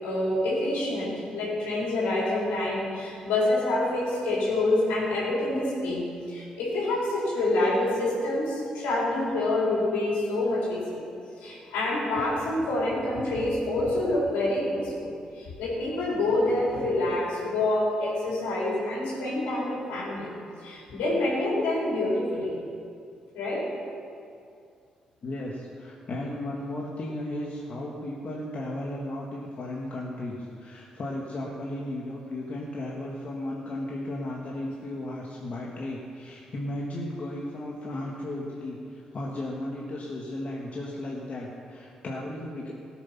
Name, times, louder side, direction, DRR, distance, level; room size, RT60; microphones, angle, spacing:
voice 1, 0.0-11.1 11.4-20.3 20.6-22.6 23.3-23.7, left 2 dB, 75° left, -5 dB, 4.1 m, -27 dB
voice 2, 25.2-42.7, left 1 dB, 50° left, -3 dB, 1.9 m, -35 dB
17.5 x 8.0 x 5.9 m, 2.4 s
hypercardioid pair, 45°, 3 cm